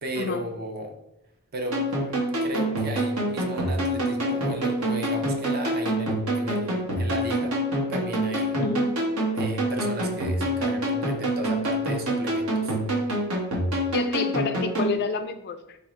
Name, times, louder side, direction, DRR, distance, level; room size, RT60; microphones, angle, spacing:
voice 1, 0.0-0.9 1.5-7.6 7.9-8.6 9.3-12.8, right 1 dB, 45° right, 5 dB, 0.5 m, -35 dB
sound 1, 1.7-15.0, right 1 dB, 75° right, 1.1 m, -26 dB
voice 2, 8.6-8.9 13.9-15.8, left 4 dB, 50° left, 8 dB, 0.3 m, -29 dB
3.5 x 2.1 x 4.1 m, 0.88 s
head